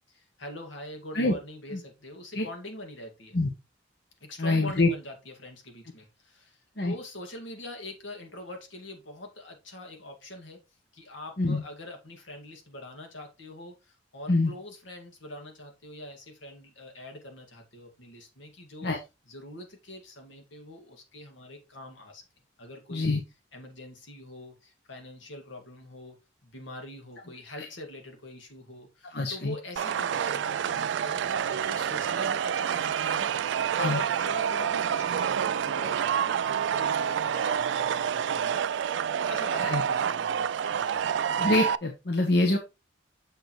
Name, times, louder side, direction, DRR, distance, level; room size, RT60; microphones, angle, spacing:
voice 1, 0.1-3.4 4.2-10.6 10.9-18.9 19.3-22.2 22.6-23.2 23.5-26.2 26.4-41.1, left 1 dB, 80° left, 2.2 m, -44 dB
voice 2, 4.4-4.9 6.8-6.9 11.4-11.6 14.3-14.5 18.8-19.0 22.9-23.2 29.1-29.5 33.8-34.0 37.4-37.5 39.6-39.8 41.4-42.6, left 2 dB, 55° left, 1.0 m, -25 dB
sound 1, 29.8-41.8, right 8 dB, 70° right, 0.3 m, -28 dB
6.8 x 6.7 x 3.2 m
head